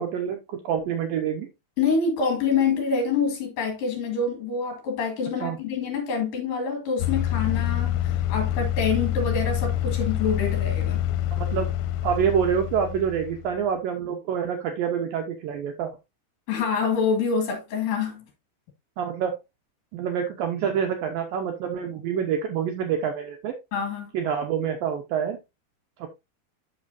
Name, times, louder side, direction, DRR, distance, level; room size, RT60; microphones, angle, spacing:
voice 1, 0.0-1.5 5.4-5.6 11.4-11.7 12.0-15.9 19.0-19.3 19.9-23.5 24.1-25.4 26.0-26.1, right 8 dB, 80° right, 2.1 m, -27 dB
voice 2, 1.8-11.0 16.5-18.2 23.7-24.1, left 5 dB, 55° left, 3.4 m, -26 dB
sound 1, 7.0-13.6, left 11 dB, 85° left, 2.8 m, -26 dB
8.6 x 6.6 x 2.6 m
omnidirectional pair, 5.1 m